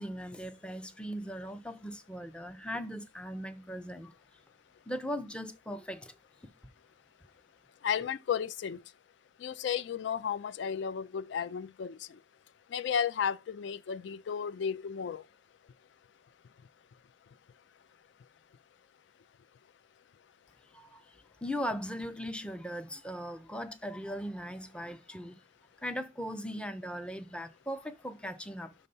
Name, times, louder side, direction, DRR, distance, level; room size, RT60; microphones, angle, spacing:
voice 1, 0.0-4.1 4.9-6.1 20.7-21.0 21.4-25.4 25.8-28.7, equal, 5° left, 0.4 m, -39 dB
voice 2, 7.8-8.8 9.4-12.0 12.7-15.2, left 7 dB, 65° left, 0.3 m, -33 dB
5.5 x 3.5 x 5.4 m
head